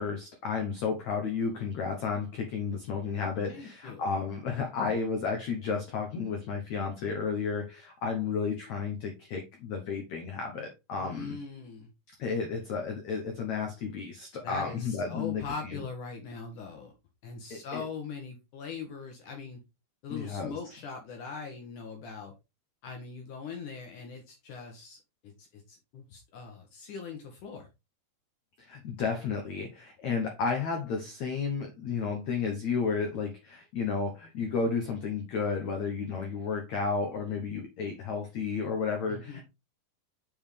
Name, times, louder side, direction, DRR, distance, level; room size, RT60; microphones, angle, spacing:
voice 1, 0.0-11.4 12.2-15.8 17.5-17.8 20.1-20.6 28.6-39.4, left 5 dB, 85° left, 3 dB, 1.6 m, -32 dB
voice 2, 3.5-4.1 11.0-11.9 14.4-16.9 17.2-19.6 20.0-22.3 22.8-25.0 25.2-27.7 39.1-39.4, left 5 dB, 60° left, 3 dB, 2.2 m, -41 dB
7.0 x 5.5 x 3.3 m, 0.24 s
omnidirectional pair, 5.0 m